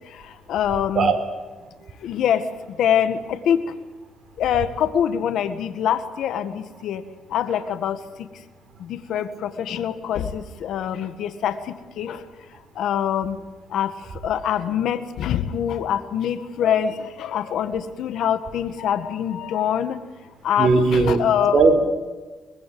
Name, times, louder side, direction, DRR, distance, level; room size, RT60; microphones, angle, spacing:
voice 1, 0.5-1.1 2.0-2.4 2.8-3.6 4.4-7.0 7.3-8.0 8.9-11.5 12.0-12.2 12.8-13.4 13.7-13.9 14.2-20.0 20.4-21.6, left 9 dB, 75° left, 10 dB, 1.8 m, -24 dB
voice 2, 20.6-21.2 21.5-21.8, right 4 dB, 55° right, 7 dB, 4.5 m, -17 dB
23.5 x 22.0 x 7.9 m, 1.3 s
cardioid pair, 90°, 0 cm